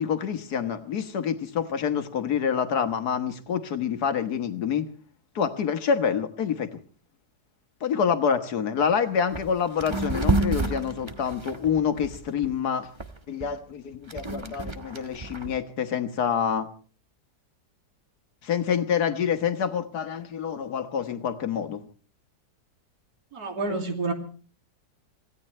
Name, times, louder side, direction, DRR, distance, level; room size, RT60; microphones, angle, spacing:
voice 1, 0.0-4.8 5.4-6.7 7.8-12.9 13.3-16.7 18.4-21.8, left 7 dB, 65° left, 9 dB, 1.8 m, -27 dB
sound 1, 8.8-8.9 9.3-9.5 9.8-12.5 13.0-15.5, right 2 dB, 20° right, 1.1 m, -29 dB
voice 2, 23.3-24.1, right 3 dB, 65° right, 3 dB, 3.2 m, -29 dB
25.5 x 16.5 x 3.2 m, 0.40 s
omnidirectional pair, 1.8 m